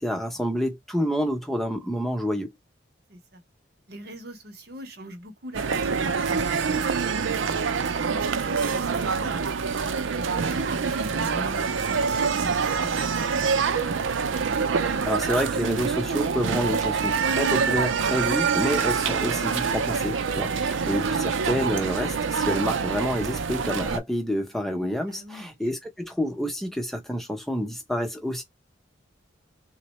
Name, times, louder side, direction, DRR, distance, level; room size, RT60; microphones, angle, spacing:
voice 1, 0.0-2.5 14.8-28.4, equal, ahead, 0.7 m, -28 dB
voice 2, 3.1-3.4 3.9-7.6 8.3-14.0 25.1-25.7, right 1 dB, 55° right, 0.8 m, -41 dB
sound 1, 5.5-24.0, right 5 dB, 85° right, 0.5 m, -26 dB
3.7 x 2.1 x 3.0 m
head